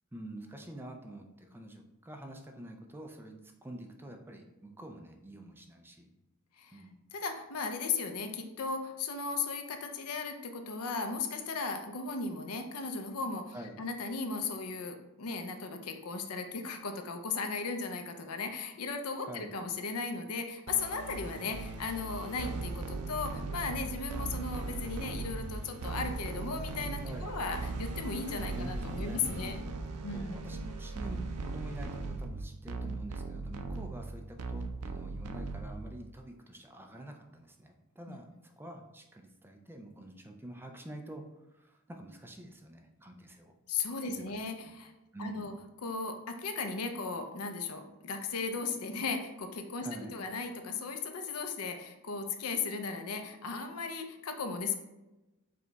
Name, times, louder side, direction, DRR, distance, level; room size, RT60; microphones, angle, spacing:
voice 1, 0.1-6.1 6.7-7.1 13.5-13.9 19.3-19.6 27.0-27.4 28.5-29.6 30.1-41.3 41.5-43.5 44.0-44.2 44.6-44.7 45.1-45.5 49.8-50.2, right 1 dB, 10° right, 4 dB, 0.3 m, -47 dB
voice 2, 7.1-29.6 30.0-30.4 38.1-38.2 43.7-44.9 45.2-45.5 45.8-54.8, left 4 dB, 70° left, 6 dB, 0.6 m, -36 dB
sound 1, 20.7-36.1, right 3 dB, 85° right, 0.5 m, -38 dB
5.0 x 2.3 x 3.9 m, 0.98 s
head